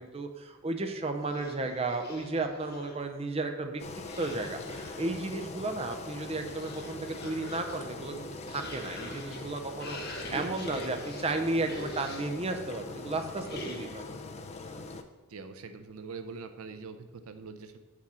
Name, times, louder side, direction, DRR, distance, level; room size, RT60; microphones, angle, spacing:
voice 1, 0.0-3.8 4.2-14.0, right 2 dB, 30° right, 5 dB, 0.6 m, -34 dB
sound 1, 1.2-3.1 4.0-5.2 6.0-12.5 13.4-14.1, left 1 dB, 45° left, 1.3 m, -45 dB
Engine, 3.8-15.0, left 2 dB, 30° left, 0.4 m, -42 dB
voice 2, 15.3-17.8, right 4 dB, 80° right, 9 dB, 0.5 m, -43 dB
7.7 x 6.1 x 4.3 m, 1.2 s
head